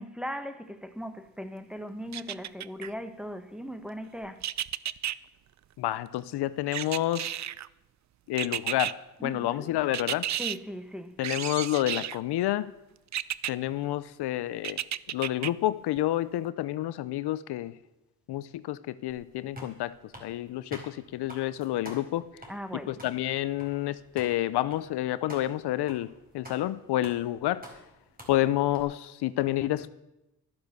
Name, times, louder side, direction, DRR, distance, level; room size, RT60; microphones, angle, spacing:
voice 1, 0.0-4.4 9.2-9.7 10.4-11.2 22.5-23.0, equal, ahead, 1.3 m, -38 dB
sound 1, 2.1-2.9 4.4-5.2 6.7-7.7 8.4-8.9 9.9-10.6 11.2-12.2 13.1-13.5 14.6-15.5 16.0-16.1, right 11 dB, 45° right, 0.5 m, -32 dB
voice 2, 5.8-7.3 8.3-9.0 9.2-10.2 11.2-12.7 13.5-14.8 15.1-17.7 18.3-19.9 20.2-22.2 22.9-26.1 26.3-27.6 28.3-29.9, left 14 dB, 90° left, 0.6 m, -29 dB
sound 2, 19.1-28.8, equal, 25° right, 4.4 m, -49 dB
12.5 x 11.0 x 6.7 m
cardioid pair, 70°, 38 cm